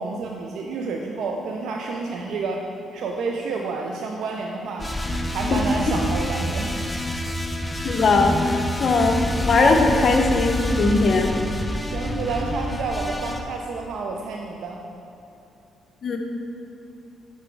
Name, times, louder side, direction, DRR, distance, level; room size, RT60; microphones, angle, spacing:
voice 1, 0.0-2.7 2.9-5.0 5.3-6.7 11.8-14.8, right 4 dB, 75° right, 1 dB, 0.5 m, -29 dB
sound 1, 4.8-13.4, left 1 dB, 10° left, 0.5 m, -27 dB
voice 2, 7.8-11.3 16.0-16.2, left 3 dB, 50° left, 3 dB, 0.8 m, -20 dB
6.1 x 5.5 x 4.5 m, 2.9 s
cardioid pair, 90°, 0 cm